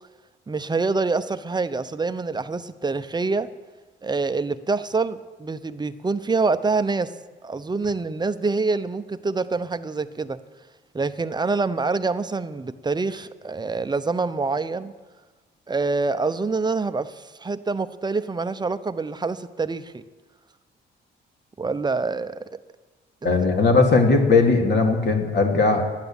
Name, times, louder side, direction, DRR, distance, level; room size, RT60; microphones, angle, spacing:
voice 1, 0.5-3.5 4.0-7.1 7.4-10.4 10.9-14.9 15.7-20.0 21.6-22.5 23.2-23.3, right 3 dB, 20° right, 11 dB, 0.7 m, -26 dB
voice 2, 23.2-25.9, left 3 dB, 60° left, 2 dB, 2.5 m, -18 dB
12.5 x 10.0 x 8.9 m, 1.3 s
cardioid pair, 90°, 20 cm